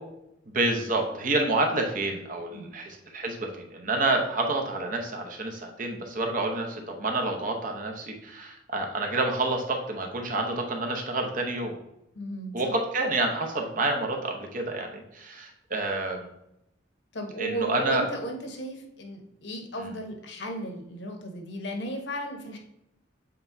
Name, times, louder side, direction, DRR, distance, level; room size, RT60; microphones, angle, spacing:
voice 1, 0.5-11.7 12.5-16.3 17.4-18.0 19.8-20.0, right 2 dB, 45° right, 3 dB, 0.9 m, -28 dB
voice 2, 12.1-12.7 17.1-22.6, equal, 65° left, 3 dB, 1.1 m, -35 dB
7.8 x 4.5 x 2.7 m, 0.84 s
head